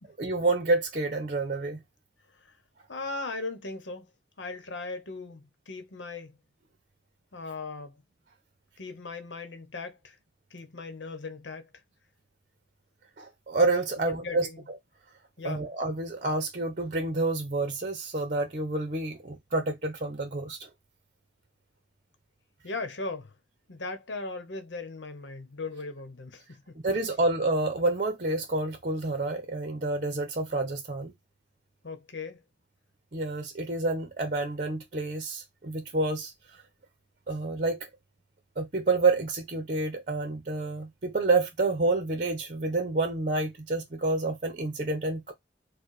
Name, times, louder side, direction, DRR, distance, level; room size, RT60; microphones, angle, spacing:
voice 1, 0.2-1.8 13.2-14.5 15.4-20.7 26.8-31.1 33.1-36.3 37.3-37.9 38.6-45.3, right 2 dB, 45° right, 0.8 m, -28 dB
voice 2, 2.9-4.1 4.4-6.4 7.3-8.0 8.8-10.2 10.5-11.7 14.0-14.6 15.4-15.7 22.6-23.3 23.7-26.8 31.8-32.4, left 3 dB, 75° left, 1.0 m, -38 dB
4.6 x 2.2 x 4.7 m
head